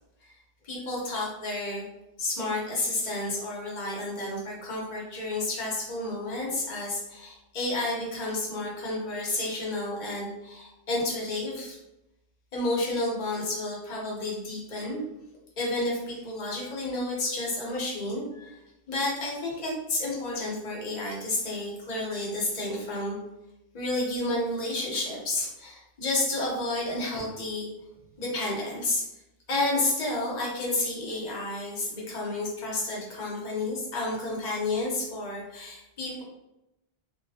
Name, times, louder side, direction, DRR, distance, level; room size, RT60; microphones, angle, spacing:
voice 1, 0.6-1.8 2.2-11.8 12.5-15.0 15.6-18.5 18.9-23.2 23.7-27.7 28.2-29.0 29.5-36.2, left 2 dB, 40° left, -4 dB, 0.8 m, -31 dB
2.3 x 2.0 x 2.7 m, 0.90 s
omnidirectional pair, 1.2 m